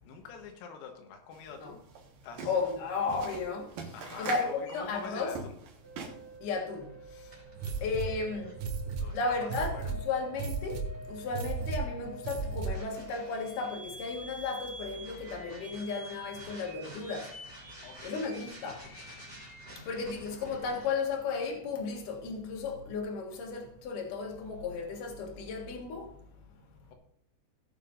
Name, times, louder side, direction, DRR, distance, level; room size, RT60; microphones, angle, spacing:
voice 1, 0.1-1.8 2.2-2.5 3.9-5.5 9.0-9.9 17.8-18.3, left 6 dB, 90° left, 3.9 m, -45 dB
sound 1, 1.3-1.4 1.7-6.3, right 5 dB, 60° right, 2.4 m, -42 dB
voice 2, 2.4-5.3 6.4-7.4 7.8-8.6 9.1-17.3 18.0-18.9 19.7-26.2, left 4 dB, 60° left, 2.3 m, -34 dB
sound 2, 5.8-20.9, equal, 5° right, 2.9 m, -47 dB
sound 3, 7.6-13.0, right 4 dB, 90° right, 4.0 m, -36 dB
18.0 x 7.3 x 2.6 m
omnidirectional pair, 6.0 m